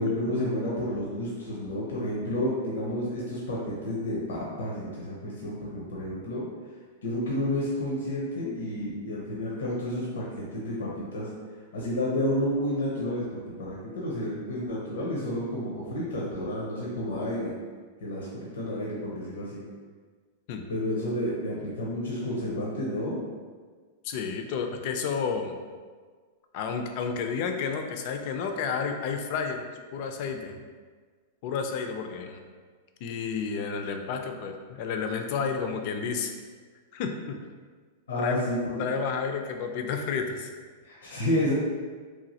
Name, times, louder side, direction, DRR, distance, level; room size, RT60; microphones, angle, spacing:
voice 1, 0.0-6.4 7.0-11.3 11.7-17.5 18.0-19.6 20.7-23.2 38.1-38.8 40.8-41.5, left 1 dB, 85° left, -5 dB, 0.6 m, -30 dB
voice 2, 24.0-25.5 26.5-29.6 29.9-30.6 31.4-32.4 33.0-36.3 36.9-37.4 38.2-38.4 38.8-40.5, left 5 dB, 55° left, 5 dB, 0.3 m, -31 dB
3.0 x 2.3 x 2.7 m, 1.5 s
hypercardioid pair, 130°, 0 cm